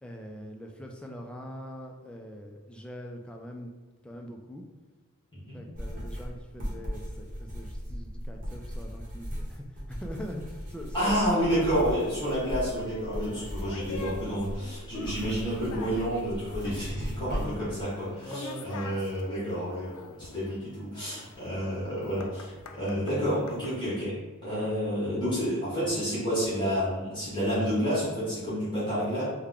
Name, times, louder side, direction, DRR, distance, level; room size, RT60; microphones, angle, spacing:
voice 1, 0.0-3.7 4.0-4.6 5.5-11.7 12.3-12.4 13.4-13.5 17.3-17.5 18.2-18.7, equal, 5° left, 1 dB, 0.3 m, -42 dB
sound 1, 5.7-17.8, equal, 40° right, 0.9 m, -38 dB
voice 2, 10.9-24.1 24.4-29.2, equal, 20° left, -11 dB, 1.2 m, -29 dB
sound 2, 12.1-23.7, left 4 dB, 90° left, 0.4 m, -46 dB
3.4 x 2.2 x 3.6 m, 1.3 s
head